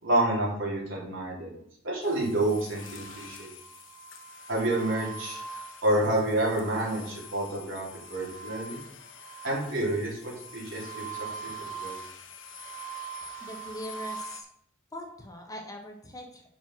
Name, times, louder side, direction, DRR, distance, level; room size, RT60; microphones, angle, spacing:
voice 1, 0.0-1.6 1.8-3.5 4.5-5.4 5.8-8.8 9.4-11.1 11.4-12.0, right 1 dB, 75° right, -4 dB, 3.1 m, -29 dB
sound 1, 2.0-14.4, right 3 dB, 65° left, 1.1 m, -42 dB
voice 2, 13.4-14.5 14.9-16.4, equal, 20° left, 2 dB, 1.0 m, -41 dB
5.7 x 5.1 x 6.1 m, 0.70 s
head